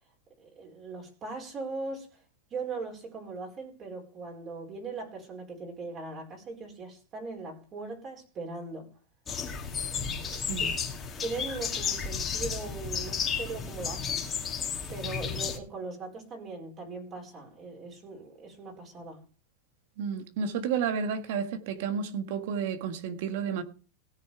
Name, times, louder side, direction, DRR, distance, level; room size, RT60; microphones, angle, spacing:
voice 1, 0.4-2.2 2.5-8.9 9.8-10.7 11.2-14.2 14.9-19.2, right 3 dB, 30° right, 4.6 m, -40 dB
sound 1, 9.3-15.6, left 6 dB, 20° left, 2.2 m, -33 dB
voice 2, 10.3-10.7 20.0-23.6, right 6 dB, 65° right, 1.6 m, -31 dB
17.5 x 6.7 x 4.9 m
supercardioid pair, 130°, 0 cm